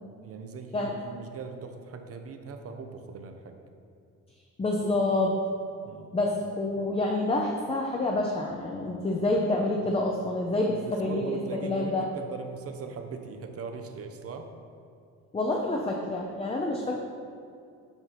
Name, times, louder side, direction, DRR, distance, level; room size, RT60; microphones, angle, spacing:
voice 1, 0.2-3.6 5.8-6.2 9.8-10.0 10.5-14.5, right 4 dB, 50° right, 6 dB, 0.6 m, -40 dB
voice 2, 4.6-5.4 6.1-12.1 15.3-17.0, left 2 dB, 20° left, 0 dB, 0.6 m, -28 dB
7.0 x 2.7 x 5.8 m, 2.5 s
cardioid pair, 90°, 30 cm